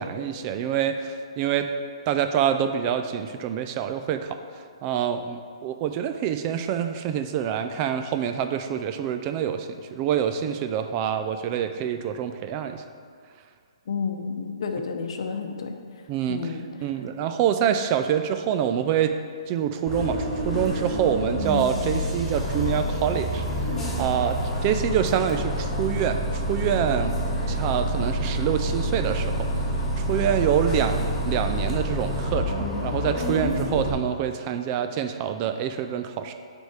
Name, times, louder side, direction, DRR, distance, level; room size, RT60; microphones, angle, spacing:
voice 1, 0.0-1.7 2.1-4.4 4.8-12.8 16.1-16.5 16.8-19.1 19.5-23.4 24.0-27.2 27.5-29.5 30.0-36.3, right 9 dB, 30° right, 8 dB, 0.4 m, -26 dB
voice 2, 13.9-15.7 16.3-16.6, left 5 dB, 60° left, 4 dB, 0.8 m, -30 dB
Bus, 19.9-33.9, equal, 10° left, 1.3 m, -27 dB
8.6 x 3.5 x 4.8 m, 2.1 s
hypercardioid pair, 145°, 3 cm